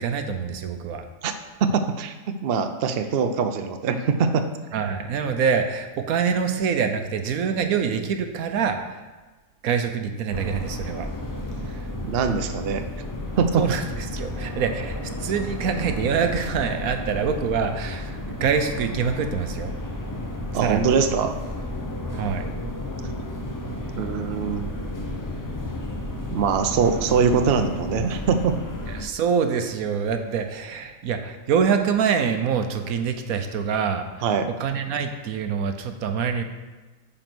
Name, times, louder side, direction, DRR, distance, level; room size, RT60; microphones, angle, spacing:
voice 1, 0.0-1.0 4.7-9.1 9.6-11.1 11.6-11.9 13.6-19.7 20.6-20.9 22.1-22.5 28.9-34.3 34.6-36.4, right 6 dB, 80° right, 7 dB, 1.2 m, -25 dB
voice 2, 1.6-4.5 12.0-12.9 13.4-13.7 20.5-21.4 24.0-25.2 26.3-28.6 34.2-34.5, right 6 dB, 55° right, 7 dB, 0.7 m, -23 dB
sound 1, 10.3-29.0, left 1 dB, 20° left, 0.5 m, -32 dB
9.1 x 4.4 x 6.0 m, 1.2 s
omnidirectional pair, 1.5 m